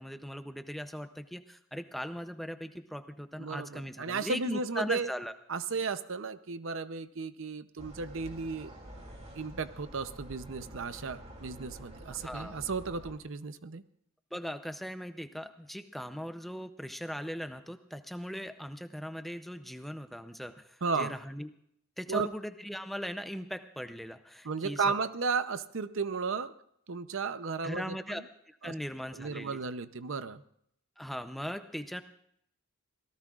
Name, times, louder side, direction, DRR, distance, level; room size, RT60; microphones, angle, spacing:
voice 1, 0.0-5.3 12.1-12.6 14.3-21.5 22.0-24.8 27.6-28.2 28.5-29.6 31.0-32.0, equal, ahead, 8 dB, 0.6 m, -39 dB
voice 2, 3.4-5.1 5.5-8.7 9.3-13.8 20.8-21.1 22.1-22.3 24.4-26.5 26.9-28.2 28.6-28.7 29.1-30.4, right 4 dB, 60° right, 13 dB, 0.7 m, -34 dB
sound 1, 7.8-13.1, right 1 dB, 30° right, 2.9 m, -48 dB
25.0 x 17.5 x 2.4 m, 0.71 s
head